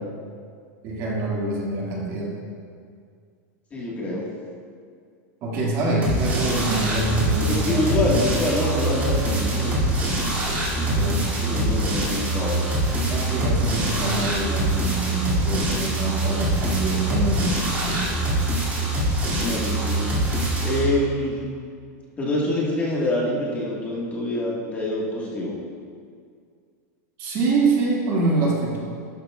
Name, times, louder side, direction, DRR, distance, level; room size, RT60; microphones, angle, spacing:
voice 1, 0.8-2.3 5.4-8.3 10.5-11.6 13.1-17.6 17.8-18.2 27.2-28.8, right 2 dB, 35° right, -3 dB, 2.0 m, -25 dB
voice 2, 3.7-4.3 7.5-9.8 11.4-12.6 19.4-21.4 22.2-25.6, left 1 dB, 15° left, -4 dB, 1.6 m, -26 dB
sound 1, 6.0-20.8, right 1 dB, 20° right, 2.4 m, -24 dB
12.0 x 11.5 x 2.3 m, 2.2 s
supercardioid pair, 160°, 9 cm